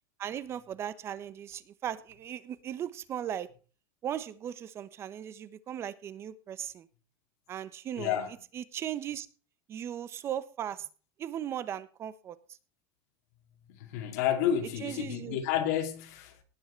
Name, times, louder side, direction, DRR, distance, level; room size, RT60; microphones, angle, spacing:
voice 1, 0.2-3.5 4.0-6.9 7.5-8.2 8.5-9.3 9.7-10.9 11.2-12.4 14.8-15.4, right 10 dB, 30° right, 0.9 m, -37 dB
voice 2, 8.0-8.4 13.7-16.3, left 10 dB, 70° left, 2.5 m, -30 dB
18.5 x 6.4 x 4.5 m
supercardioid pair, 150°, 9 cm